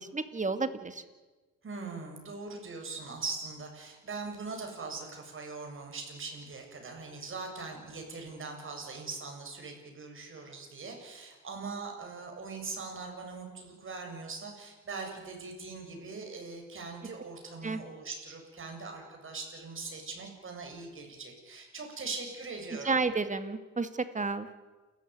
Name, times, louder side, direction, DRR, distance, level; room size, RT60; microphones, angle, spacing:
voice 1, 0.1-1.0 17.6-17.8 22.8-24.5, right 4 dB, 25° right, 11 dB, 2.2 m, -31 dB
voice 2, 1.6-23.0, right 4 dB, 40° right, 2 dB, 7.7 m, -41 dB
29.0 x 14.5 x 9.6 m, 1.3 s
cardioid pair, 90°, 30 cm